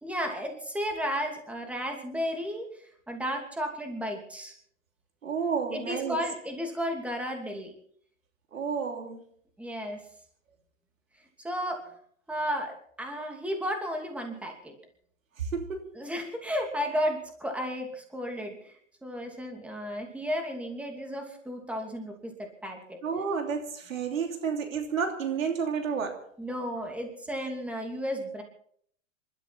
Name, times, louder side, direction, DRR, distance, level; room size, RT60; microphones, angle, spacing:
voice 1, 0.0-4.5 5.7-7.7 9.6-10.0 11.4-11.8 12.3-14.7 15.9-18.7 19.0-23.0 24.1-24.2 26.4-28.4, equal, 5° right, 2.7 m, -33 dB
voice 2, 5.2-6.2 8.5-9.2 15.5-16.0 23.0-26.2, right 6 dB, 85° right, 3.2 m, -31 dB
27.0 x 12.5 x 4.2 m
hypercardioid pair, 130°, 39 cm